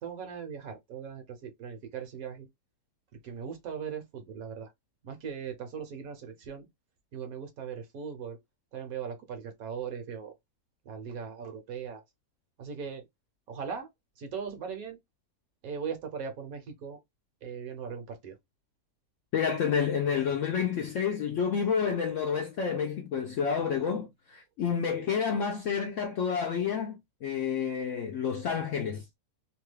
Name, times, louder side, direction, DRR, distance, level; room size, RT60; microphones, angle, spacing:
voice 1, 0.0-2.5 3.2-4.7 5.0-6.7 7.1-8.4 8.7-10.3 10.9-12.0 12.6-13.0 13.5-13.9 14.2-15.0 15.6-17.0 17.4-18.4, right 7 dB, 65° right, 1.2 m, -39 dB
voice 2, 19.3-29.0, left 7 dB, 70° left, 0.7 m, -29 dB
2.9 x 2.3 x 3.1 m
omnidirectional pair, 1.7 m